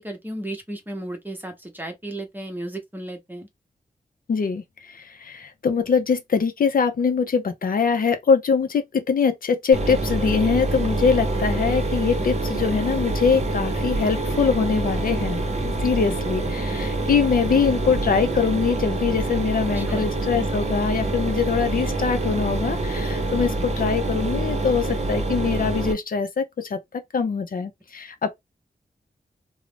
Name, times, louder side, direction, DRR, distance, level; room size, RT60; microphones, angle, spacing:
voice 1, 0.0-3.5 19.7-20.1, right 1 dB, 10° right, 0.8 m, -34 dB
voice 2, 4.3-28.3, left 5 dB, 60° left, 0.5 m, -23 dB
Mechanisms, 9.7-25.9, right 2 dB, 45° right, 0.7 m, -26 dB
2.5 x 2.0 x 3.1 m
wide cardioid pair, 90°, 16 cm